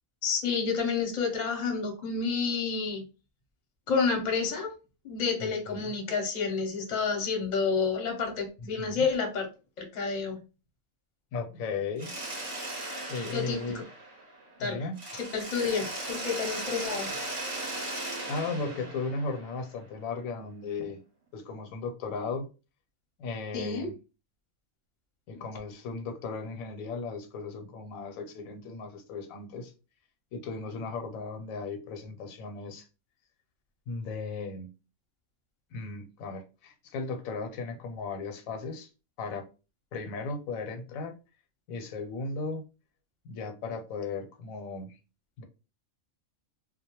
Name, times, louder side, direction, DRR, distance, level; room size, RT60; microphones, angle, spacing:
voice 1, 0.2-3.1 3.9-4.7 5.0-9.5 9.8-10.4 13.3-13.6 14.6-14.9 15.2-17.1 23.5-23.9, left 5 dB, 45° left, 2 dB, 0.6 m, -29 dB
voice 2, 5.4-5.9 8.6-9.0 11.3-12.1 13.1-13.8 14.6-15.0 18.3-21.0 21.3-22.5 23.2-23.9 25.3-29.7 30.3-32.9 33.9-34.7 35.7-38.9 39.2-39.5 39.9-41.1 41.7-42.6 43.2-44.9 45.4-45.5, left 4 dB, 80° left, 6 dB, 1.0 m, -36 dB
Mechanisms, 12.0-14.6 15.0-19.8, right 1 dB, 30° right, 0.6 m, -37 dB
2.3 x 2.1 x 2.8 m, 0.31 s
omnidirectional pair, 1.4 m